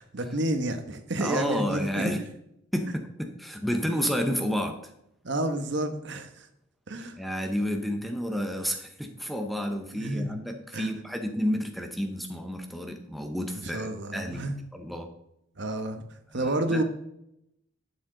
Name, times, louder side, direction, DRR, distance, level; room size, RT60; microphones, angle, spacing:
voice 1, 0.0-2.1 5.2-6.5 6.9-7.2 9.9-10.3 10.7-10.9 13.6-14.5 15.6-16.0 16.3-16.8, right 1 dB, 55° right, 7 dB, 1.1 m, -30 dB
voice 2, 1.2-2.2 2.7-4.9 7.2-15.1 16.4-16.8, equal, ahead, 4 dB, 0.7 m, -31 dB
11.5 x 7.4 x 3.8 m, 0.81 s
head